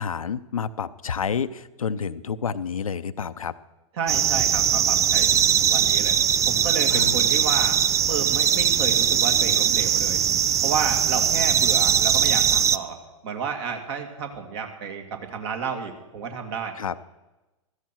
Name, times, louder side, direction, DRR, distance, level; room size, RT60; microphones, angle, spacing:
voice 1, 0.0-3.5 6.9-7.2 16.8-16.9, left 6 dB, 85° left, 13 dB, 0.6 m, -29 dB
voice 2, 3.9-6.2 6.5-7.8 8.1-10.2 10.6-13.0 13.2-16.7, right 6 dB, 50° right, 5 dB, 2.4 m, -31 dB
sound 1, 4.1-12.8, right 9 dB, 20° right, 0.4 m, -20 dB
15.5 x 14.0 x 4.5 m, 1.1 s
hypercardioid pair, 105°, 17 cm